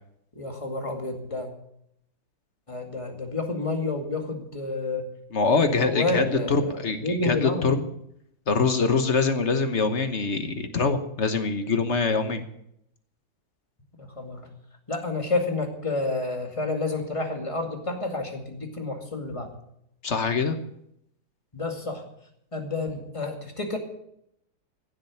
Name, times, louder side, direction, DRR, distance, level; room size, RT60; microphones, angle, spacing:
voice 1, 0.3-1.5 2.7-5.1 5.5-7.8 14.0-14.4 14.9-19.5 21.5-22.0 22.5-23.8, left 2 dB, 15° left, 3 dB, 2.1 m, -30 dB
voice 2, 5.3-7.8 8.5-12.4 20.0-20.6, left 4 dB, 40° left, 8 dB, 1.2 m, -24 dB
16.0 x 7.6 x 8.5 m, 0.75 s
omnidirectional pair, 2.2 m